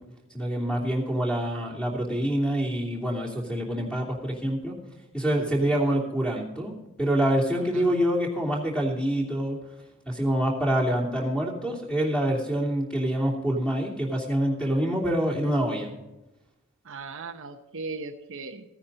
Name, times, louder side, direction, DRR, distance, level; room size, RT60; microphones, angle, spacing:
voice 1, 0.3-4.7 5.1-6.7 7.0-9.6 10.1-15.9, right 1 dB, 5° left, -1 dB, 2.9 m, -26 dB
voice 2, 16.9-18.6, right 3 dB, 60° right, 6 dB, 0.9 m, -38 dB
15.5 x 9.9 x 4.0 m, 0.99 s
head